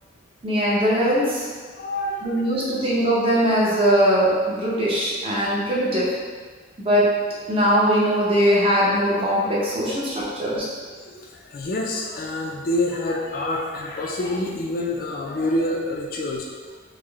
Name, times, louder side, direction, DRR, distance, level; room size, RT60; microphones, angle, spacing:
voice 1, 0.4-1.5 2.2-6.1 6.8-7.2 7.5-10.6, equal, 30° right, -6 dB, 0.7 m, -20 dB
voice 2, 1.7-2.5 9.8-10.0 10.2-10.4 11.0-16.5, left 1 dB, 45° left, -1 dB, 0.3 m, -27 dB
3.5 x 2.1 x 3.4 m, 1.5 s
head